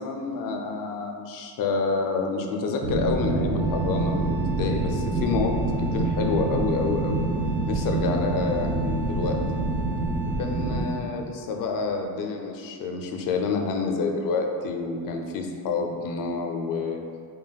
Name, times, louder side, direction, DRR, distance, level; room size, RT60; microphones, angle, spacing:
voice 1, 0.0-7.3 7.7-9.6 10.4-17.0, left 4 dB, 55° left, 3 dB, 0.5 m, -28 dB
sound 1, 2.8-10.8, right 2 dB, 30° right, 0.4 m, -26 dB
Wind instrument woodwind instrument, 3.6-11.2, right 3 dB, 80° right, 0.8 m, -41 dB
3.4 x 2.3 x 3.9 m, 2.3 s
cardioid pair, 125°, 41 cm